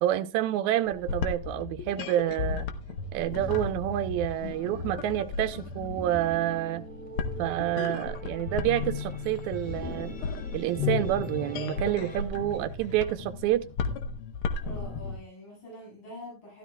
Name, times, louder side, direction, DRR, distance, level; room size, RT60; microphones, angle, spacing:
voice 1, 0.0-2.7 3.1-6.8 7.4-10.2 10.5-13.7, right 13 dB, 75° right, 2.1 m, -28 dB
sound 1, 0.9-15.2, left 4 dB, 65° left, 1.4 m, -35 dB
sound 2, 3.2-12.2, left 6 dB, 5° left, 0.6 m, -38 dB
voice 2, 14.6-16.6, left 1 dB, 40° left, 7.6 m, -45 dB
14.0 x 12.5 x 2.2 m
omnidirectional pair, 3.5 m